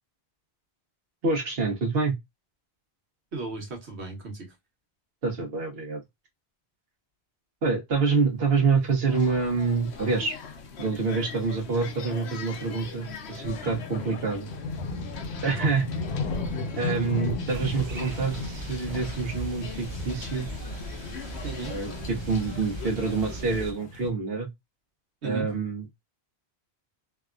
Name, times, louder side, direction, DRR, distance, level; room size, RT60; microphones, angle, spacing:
voice 1, 1.2-2.1 5.2-6.0 7.6-10.4 10.8-14.5 15.4-15.8 16.8-20.5 21.7-24.5 25.2-25.9, right 4 dB, 65° right, 1.2 m, -27 dB
voice 2, 3.3-4.5 15.4-15.7 21.4-21.8 25.2-25.5, right 3 dB, 85° right, 1.4 m, -35 dB
sound 1, 9.1-23.7, left 6 dB, 80° left, 1.0 m, -42 dB
sound 2, 9.8-24.1, left 3 dB, 50° left, 0.8 m, -37 dB
sound 3, 17.5-23.7, right 2 dB, 45° right, 0.4 m, -39 dB
3.3 x 2.3 x 2.3 m
omnidirectional pair, 1.1 m